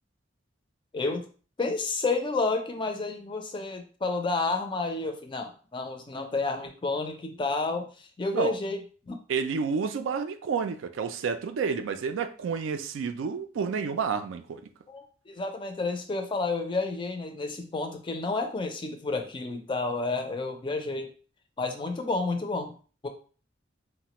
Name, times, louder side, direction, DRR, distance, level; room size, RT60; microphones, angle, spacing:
voice 1, 0.9-1.3 1.6-9.2 14.9-21.1 21.6-22.7 23.0-23.1, left 3 dB, 25° left, 0.4 m, -30 dB
voice 2, 9.3-14.6, right 5 dB, 85° right, 0.3 m, -30 dB
3.1 x 2.1 x 2.9 m
head